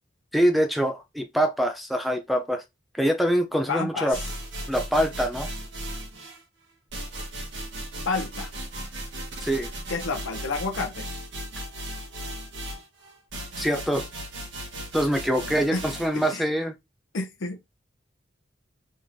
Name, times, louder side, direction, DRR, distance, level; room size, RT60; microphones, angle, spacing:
voice 1, 0.3-2.6 3.0-4.2 4.7-5.5 9.4-9.7 13.6-14.1 14.9-16.8, equal, ahead, 0.4 m, -24 dB
voice 2, 3.7-4.1 8.1-8.5 9.9-11.1 15.7-15.8 16.1-16.4 17.1-17.6, left 4 dB, 80° left, 0.7 m, -29 dB
sound 1, 4.1-6.4 6.9-16.4, right 1 dB, 65° right, 1.2 m, -36 dB
3.6 x 3.2 x 2.6 m
head